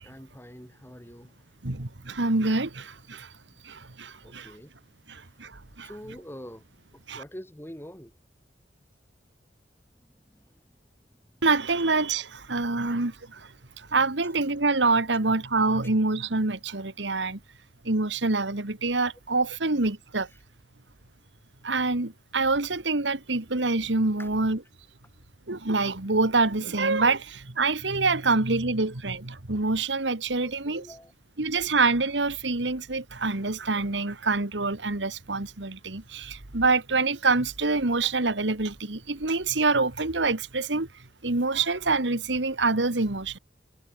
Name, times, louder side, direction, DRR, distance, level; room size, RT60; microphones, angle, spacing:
voice 1, 0.0-1.6 3.5-3.6 4.2-4.7 5.2-5.4 5.8-6.7 6.9-8.2 10.0-10.8 11.1-11.4 15.1-15.2 20.3-20.4 24.2-24.3 30.4-31.1, equal, 15° left, 7.9 m, -46 dB
voice 2, 1.6-3.3 3.6-4.5 5.1-5.9 7.1-7.2 11.4-13.5 13.8-17.4 17.8-20.3 21.6-24.6 25.5-30.8 31.4-40.9 41.2-43.4, right 3 dB, 80° right, 1.9 m, -26 dB
head